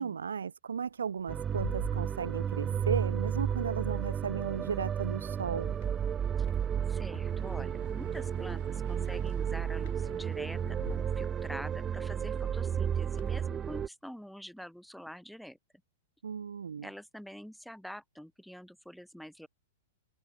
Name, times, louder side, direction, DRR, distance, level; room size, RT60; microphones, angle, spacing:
voice 1, 0.0-5.7 16.2-16.9, right 6 dB, 75° right, 0.5 m, -35 dB
sound 1, 0.8-2.8 3.1-5.4 5.7-7.3 8.4-8.8 9.2-13.4, left 19 dB, 50° left, 2.6 m, -50 dB
sound 2, 1.3-13.9, right 8 dB, 20° right, 0.4 m, -33 dB
voice 2, 6.9-15.6 16.8-19.5, equal, ahead, 4.4 m, -46 dB
sound 3, 7.2-11.4, right 20 dB, 50° right, 1.2 m, -48 dB
open air
figure-of-eight pair, 105°, 0 cm